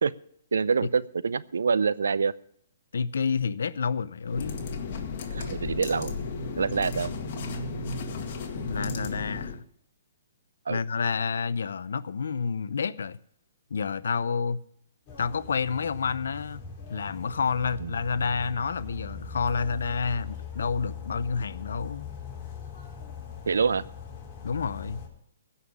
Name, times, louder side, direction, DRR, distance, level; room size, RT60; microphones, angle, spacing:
voice 1, 0.5-2.3 5.3-6.2 6.6-7.1 10.7-10.8 17.8-17.9 23.5-23.8, right 5 dB, 85° right, 0.6 m, -26 dB
voice 2, 2.9-4.7 8.7-9.6 10.7-13.2 13.7-14.6 15.2-16.6 16.9-22.1 24.4-25.0, left 5 dB, 80° left, 0.7 m, -29 dB
sound 1, 4.2-9.6, left 3 dB, 50° left, 1.9 m, -34 dB
sound 2, 15.1-25.1, left 6 dB, 30° left, 4.0 m, -41 dB
15.5 x 5.7 x 9.6 m
hypercardioid pair, 140°, 0 cm